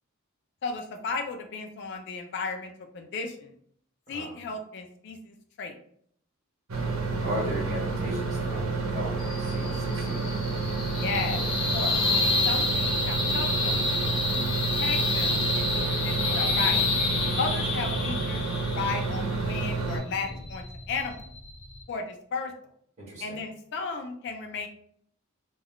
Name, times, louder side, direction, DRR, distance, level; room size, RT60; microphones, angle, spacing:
voice 1, 0.6-3.5 4.1-5.8 11.0-11.4 11.7-12.0 12.5-13.8 14.3-14.5 14.8-16.8 17.4-21.3 21.9-22.5 23.2-24.7, left 4 dB, 55° left, 5 dB, 0.4 m, -34 dB
voice 2, 4.1-4.4 7.2-9.1 9.4-10.2 16.2-16.5 20.1-20.4 23.0-23.4, equal, 35° right, -5 dB, 1.1 m, -37 dB
sound 1, 6.7-20.0, right 3 dB, 80° right, 0.7 m, -30 dB
sound 2, 9.2-21.8, left 3 dB, 25° left, 0.7 m, -29 dB
2.3 x 2.2 x 3.5 m, 0.65 s
head